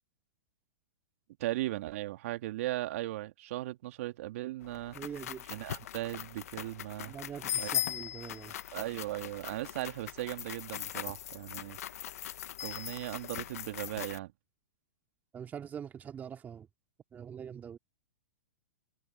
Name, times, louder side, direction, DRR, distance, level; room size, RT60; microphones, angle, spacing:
voice 1, 1.4-5.0 5.5-7.1 7.6-7.7 8.7-11.8 12.6-14.3, right 16 dB, 55° right, 2.3 m, -37 dB
sound 1, 4.6-14.2, left 12 dB, 65° left, 1.1 m, -40 dB
voice 2, 4.9-5.5 7.0-8.5 15.3-16.7 17.1-17.8, right 8 dB, 20° right, 2.3 m, -43 dB
hypercardioid pair, 125°, 9 cm